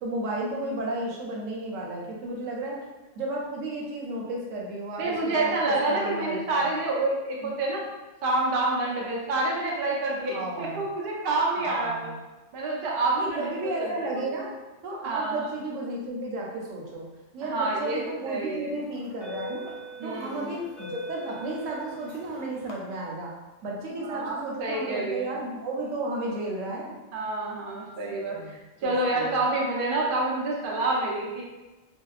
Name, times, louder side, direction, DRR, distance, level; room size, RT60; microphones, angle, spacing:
voice 1, 0.0-2.8 3.2-6.7 7.4-7.5 10.3-10.9 11.6-12.2 13.2-14.5 14.8-17.1 17.3-19.7 20.0-23.3 23.6-27.0 28.1-29.4, right 2 dB, 90° right, -2 dB, 1.0 m, -33 dB
voice 2, 5.0-7.8 8.2-12.1 12.5-14.2 15.0-15.5 17.4-18.0 18.3-18.8 20.0-20.5 24.0-25.3 27.1-31.4, right 2 dB, 55° right, -3 dB, 0.6 m, -28 dB
sound 1, 17.9-18.2 18.9-22.7, left 1 dB, 65° left, 0.8 m, -40 dB
2.7 x 2.1 x 2.3 m, 1.1 s
omnidirectional pair, 1.3 m